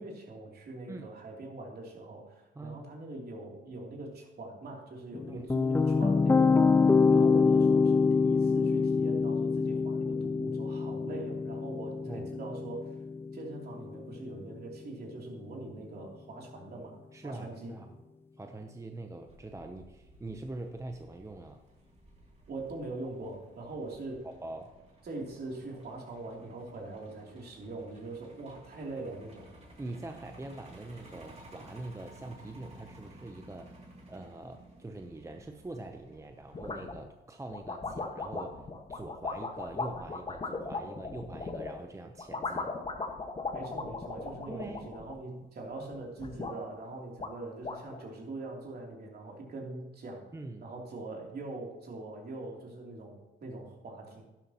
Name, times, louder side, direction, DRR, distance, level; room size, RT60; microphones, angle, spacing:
voice 1, 0.0-12.9 13.3-17.0 17.2-17.7 22.5-24.3 25.0-29.5 43.5-50.3 50.6-54.3, right 2 dB, 50° right, -1 dB, 3.0 m, -42 dB
sound 1, 5.1-14.3, left 4 dB, 10° left, 0.4 m, -26 dB
voice 2, 17.1-18.0 18.4-21.6 24.2-24.7 29.8-33.7 34.1-38.6 38.9-42.7 44.5-44.9 45.8-45.9 50.3-50.7, right 2 dB, 15° right, 5 dB, 0.7 m, -43 dB
Truck, 19.3-37.0, right 1 dB, 35° right, 2.7 m, -55 dB
sound 2, 36.5-37.1 37.5-41.7 42.2-45.4 45.7-46.6 46.9-47.0 47.2-48.0, left 3 dB, 30° left, 1.5 m, -37 dB
11.5 x 11.0 x 3.0 m, 1.1 s
cardioid pair, 90°, 20 cm